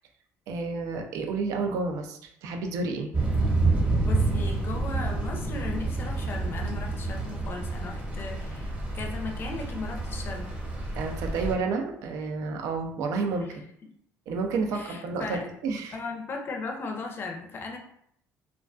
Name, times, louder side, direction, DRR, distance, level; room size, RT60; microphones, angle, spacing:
voice 1, 0.5-3.1 11.0-13.7 14.3-16.0, right 4 dB, 70° right, 3 dB, 0.4 m, -30 dB
Thunder / Rain, 3.1-11.5, right 2 dB, 20° right, 0.9 m, -28 dB
voice 2, 4.1-10.6 14.7-15.5 15.9-17.8, left 3 dB, 40° left, 2 dB, 0.5 m, -37 dB
2.3 x 2.2 x 2.4 m, 0.70 s
cardioid pair, 100°, 6 cm